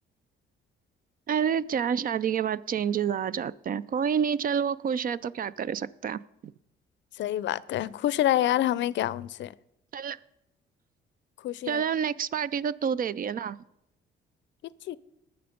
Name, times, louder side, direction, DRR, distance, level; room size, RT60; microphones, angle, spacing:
voice 1, 1.3-6.2 9.9-10.2 11.7-13.6, right 7 dB, 45° right, 19 dB, 0.4 m, -28 dB
voice 2, 7.2-9.5 11.4-11.8 14.9-15.0, left 13 dB, 65° left, 20 dB, 0.5 m, -27 dB
19.5 x 6.8 x 5.1 m, 0.86 s
cardioid pair, 90°, 20 cm